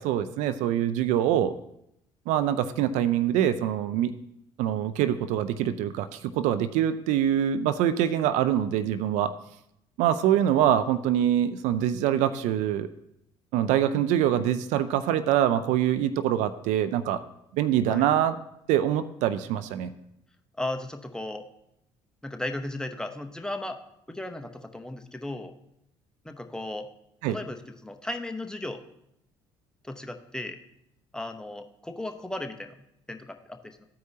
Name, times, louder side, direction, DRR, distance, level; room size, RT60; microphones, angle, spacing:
voice 1, 0.0-1.5 2.3-4.1 4.6-9.3 10.0-12.9 13.5-17.2 17.5-18.3 18.7-19.9 27.2-27.4, right 10 dB, 70° right, 13 dB, 0.4 m, -24 dB
voice 2, 20.6-21.5 22.2-23.8 24.1-25.5 26.2-26.9 27.3-28.8 29.8-30.6 31.1-32.8 33.1-33.8, left 1 dB, 5° left, 6 dB, 0.9 m, -35 dB
14.0 x 4.7 x 2.8 m, 0.77 s
hypercardioid pair, 65°, 13 cm